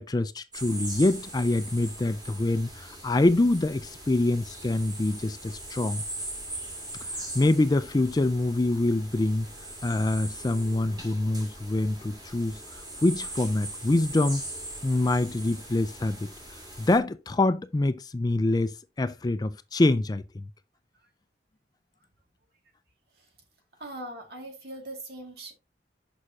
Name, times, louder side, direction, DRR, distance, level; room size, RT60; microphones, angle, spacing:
voice 1, 0.0-6.0 7.0-9.5 9.8-14.4 14.8-16.3 16.8-20.5, left 2 dB, 20° left, 0.4 m, -25 dB
sound 1, 0.5-17.0, right 1 dB, 25° right, 2.5 m, -40 dB
voice 2, 23.8-25.5, right 1 dB, 60° right, 2.1 m, -40 dB
6.4 x 6.2 x 2.7 m
head